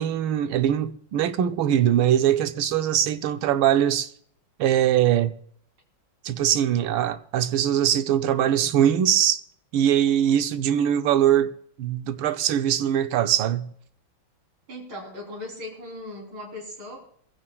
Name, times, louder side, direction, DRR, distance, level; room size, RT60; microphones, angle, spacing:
voice 1, 0.0-4.1 4.6-5.3 6.2-9.4 9.7-13.7, right 10 dB, 85° right, 1.5 m, -22 dB
voice 2, 14.7-17.0, left 1 dB, 70° right, 4.2 m, -38 dB
22.0 x 15.5 x 2.3 m
omnidirectional pair, 2.2 m